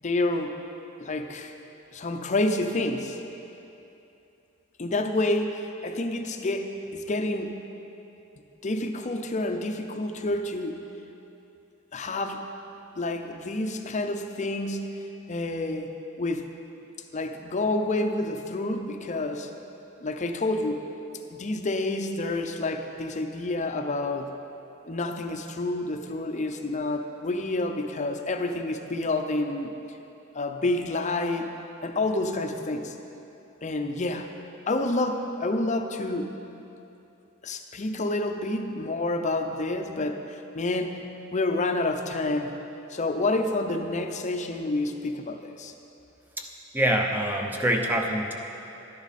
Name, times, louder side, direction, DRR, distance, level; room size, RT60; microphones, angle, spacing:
voice 1, 0.0-0.6 1.0-1.5 1.9-3.2 4.8-7.7 8.6-10.8 11.9-12.5 13.0-16.5 17.1-19.5 20.0-20.8 21.2-24.4 24.8-29.7 30.3-31.5 31.8-33.0 33.6-34.3 34.7-36.4 37.4-42.6 42.9-45.7, left 2 dB, 35° left, 5 dB, 0.6 m, -29 dB
voice 2, 46.7-48.3, right 1 dB, 10° right, 2 dB, 0.8 m, -25 dB
12.0 x 10.5 x 4.2 m, 2.9 s
head